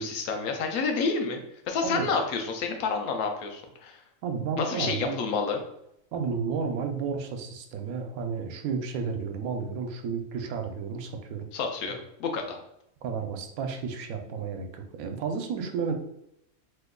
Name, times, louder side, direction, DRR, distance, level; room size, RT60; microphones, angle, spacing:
voice 1, 0.0-4.0 4.6-5.6 11.5-12.6, left 4 dB, 85° left, 4 dB, 1.1 m, -29 dB
voice 2, 4.2-5.2 6.1-11.5 13.0-15.9, right 5 dB, 80° right, 5 dB, 1.0 m, -32 dB
3.1 x 2.2 x 3.6 m, 0.79 s
omnidirectional pair, 1.5 m